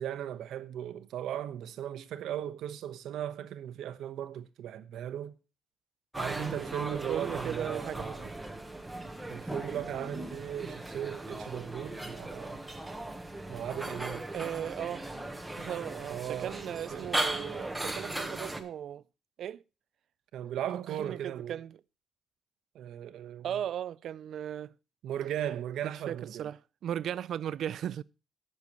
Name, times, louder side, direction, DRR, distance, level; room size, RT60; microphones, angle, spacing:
voice 1, 0.0-5.3 6.2-8.3 9.3-12.6 13.5-14.3 16.1-17.1 20.3-21.6 22.7-23.5 25.0-26.5, right 10 dB, 90° right, 1.1 m, -37 dB
sound 1, 6.1-18.6, right 2 dB, 5° right, 1.2 m, -38 dB
voice 2, 7.0-8.2 14.3-15.1 15.6-19.0 19.4-19.6 20.9-21.8 23.4-24.7 26.1-28.0, right 10 dB, 60° right, 0.4 m, -37 dB
19.5 x 6.9 x 3.0 m
cardioid pair, 170°, 0 cm